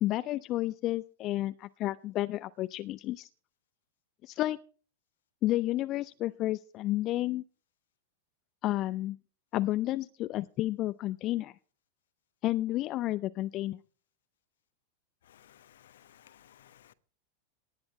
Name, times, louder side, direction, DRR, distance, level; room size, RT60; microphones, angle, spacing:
voice 1, 0.0-3.3 4.2-4.6 5.4-7.4 8.6-9.2 9.5-11.5 12.4-13.8, left 15 dB, 35° left, 0.6 m, -31 dB
voice 2, 15.8-16.9, left 11 dB, 60° left, 1.0 m, -58 dB
18.5 x 10.5 x 4.1 m
figure-of-eight pair, 90°, 0 cm